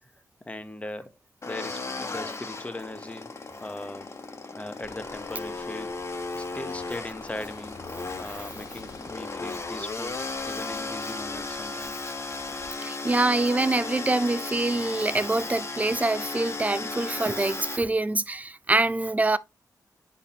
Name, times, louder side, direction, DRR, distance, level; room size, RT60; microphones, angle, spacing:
voice 1, 0.4-1.2 1.5-3.3 3.6-4.2 4.5-6.0 6.3-7.8 8.2-12.0, left 2 dB, 20° left, 1.1 m, -39 dB
sound 1, 1.4-17.8, left 3 dB, 40° left, 1.4 m, -35 dB
Car passing by / Engine, 4.8-12.7, left 3 dB, 60° left, 2.6 m, -50 dB
voice 2, 12.8-19.4, right 2 dB, 20° right, 0.6 m, -25 dB
9.5 x 4.3 x 3.0 m
cardioid pair, 70°, 7 cm